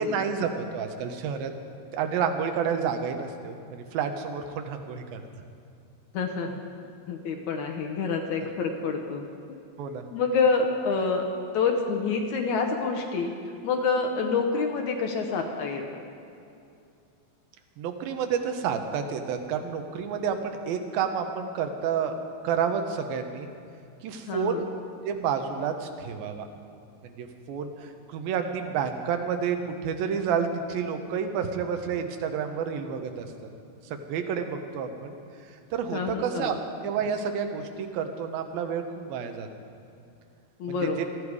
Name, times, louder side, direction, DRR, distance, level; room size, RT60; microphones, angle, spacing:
voice 1, 0.0-1.5 1.9-5.2 9.8-10.0 17.8-22.2 22.4-23.5 24.0-24.7 25.0-26.5 27.0-33.3 33.8-35.2 35.7-36.6 36.8-39.5 40.7-41.1, right 7 dB, 75° right, 6 dB, 2.7 m, -30 dB
voice 2, 6.1-6.6 7.1-9.2 10.1-11.2 11.5-13.3 13.6-16.0 24.3-24.7 35.9-36.6 40.6-41.0, left 4 dB, 70° left, 3 dB, 1.9 m, -27 dB
18.5 x 13.0 x 4.8 m, 2.5 s
omnidirectional pair, 4.5 m